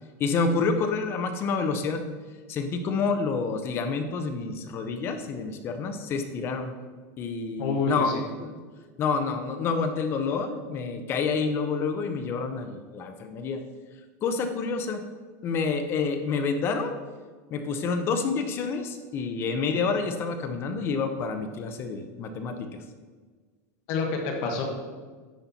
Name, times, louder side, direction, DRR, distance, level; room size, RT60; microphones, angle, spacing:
voice 1, 0.2-2.0 2.5-6.7 7.2-8.5 9.0-13.6 14.2-15.0 15.4-16.9 17.5-22.7, left 4 dB, 25° left, 7 dB, 0.6 m, -28 dB
voice 2, 7.6-8.2 23.9-24.6, left 4 dB, 45° left, 2 dB, 1.1 m, -27 dB
10.0 x 4.2 x 4.1 m, 1.4 s
supercardioid pair, 165°, 9 cm